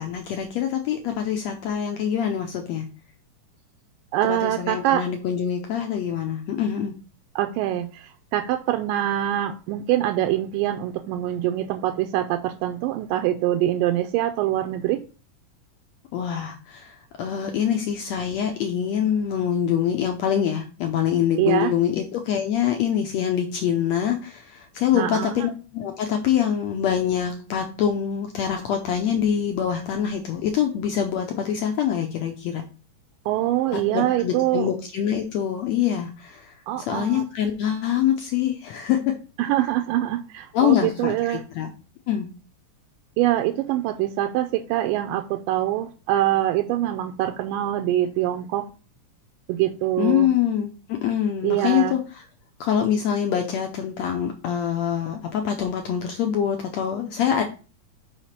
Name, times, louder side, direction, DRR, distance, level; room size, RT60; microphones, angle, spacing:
voice 1, 0.0-2.9 4.2-6.9 16.1-32.6 33.7-39.1 40.5-41.7 42.1-42.3 50.0-52.2 52.6-57.4, left 9 dB, 80° left, 4 dB, 1.5 m, -25 dB
voice 2, 4.1-5.0 7.4-15.0 21.4-21.7 24.9-25.5 33.3-34.7 36.7-37.2 39.4-41.4 43.2-48.6 49.5-50.3 51.4-51.9, right 13 dB, 85° right, 6 dB, 2.2 m, -24 dB
5.8 x 4.9 x 4.2 m, 0.36 s
omnidirectional pair, 3.8 m